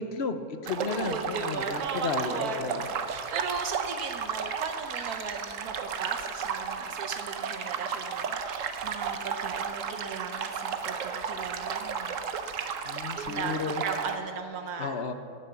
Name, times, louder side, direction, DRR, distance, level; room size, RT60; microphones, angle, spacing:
voice 1, 0.0-2.9 12.8-13.8 14.8-15.1, left 4 dB, 50° left, 9 dB, 1.0 m, -33 dB
sound 1, 0.6-14.2, right 6 dB, 65° right, 1.1 m, -34 dB
voice 2, 0.8-12.2 13.2-14.9, right 5 dB, 85° right, 5 dB, 1.4 m, -37 dB
12.5 x 9.9 x 6.9 m, 2.4 s
omnidirectional pair, 1.6 m